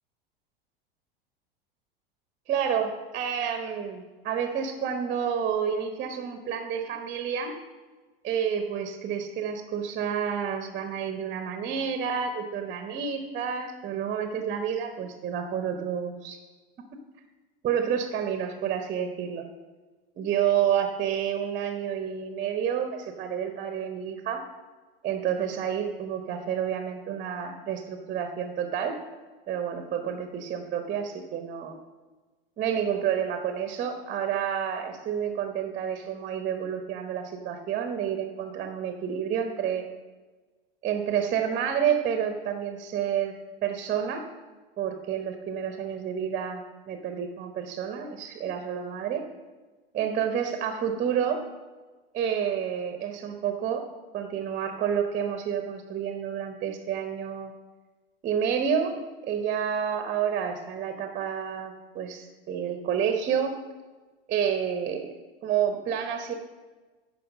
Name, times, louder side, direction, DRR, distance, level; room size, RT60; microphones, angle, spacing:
voice 1, 2.5-7.6 8.2-16.4 16.9-17.0 17.6-19.5 20.2-24.4 25.0-29.0 29.5-31.8 32.6-39.9 40.8-43.3 43.6-44.2 44.8-49.3 49.9-51.4 52.1-53.9 54.1-57.5 58.2-63.6 64.3-65.1 65.4-66.3, right 8 dB, 25° right, 6 dB, 1.0 m, -29 dB
11.0 x 5.0 x 5.1 m, 1.3 s
figure-of-eight pair, 90°, 30 cm